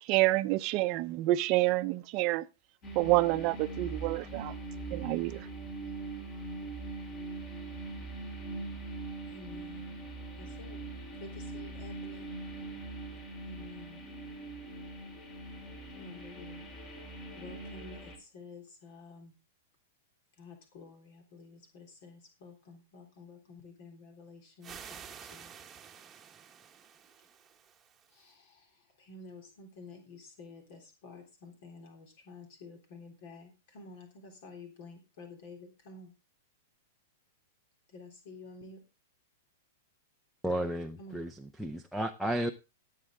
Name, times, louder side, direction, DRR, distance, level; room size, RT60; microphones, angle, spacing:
voice 1, 0.0-2.5 2.9-4.5 4.9-5.5, right 18 dB, 40° right, 0.9 m, -28 dB
sound 1, 2.8-18.2, right 2 dB, 30° left, 4.1 m, -42 dB
voice 2, 9.3-10.0 10.4-10.8 11.2-12.4 13.4-14.0 15.9-16.7 17.3-19.3 20.3-25.5 28.1-36.1 37.9-38.9 41.0-41.3, left 3 dB, 55° left, 3.5 m, -51 dB
sound 2, 24.6-28.3, right 8 dB, 15° right, 1.3 m, -50 dB
voice 3, 40.4-41.3 41.6-42.5, right 1 dB, ahead, 0.8 m, -32 dB
17.0 x 7.8 x 3.7 m
hypercardioid pair, 140°, 0 cm